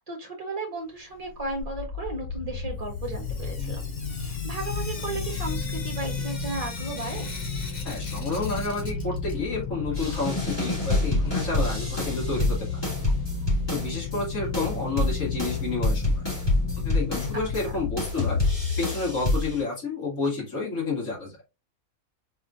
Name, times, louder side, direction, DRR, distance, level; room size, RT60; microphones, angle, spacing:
voice 1, 0.0-3.8 4.1-7.3 17.3-17.4, right 2 dB, 25° right, 1 dB, 1.6 m, -35 dB
sound 1, 1.2-18.6, left 4 dB, 75° left, 1.1 m, -33 dB
Sink (filling or washing) / Drip, 2.9-9.6 9.9-11.8 13.0-13.1 13.4-13.5 13.8-13.9 16.8-16.9 17.4-17.5 18.0-18.1 18.7-18.8 19.4-19.5 20.4-20.5, left 3 dB, 30° left, 1.1 m, -43 dB
voice 2, 7.8-12.7 13.7-16.2 16.8-18.4 18.8-21.4, left 3 dB, 55° left, -4 dB, 2.6 m, -30 dB
sound 2, 9.9-14.2 14.5-17.7 18.0-19.6, left 2 dB, 15° left, 2.7 m, -27 dB
4.8 x 3.8 x 2.5 m, 0.26 s
omnidirectional pair, 1.6 m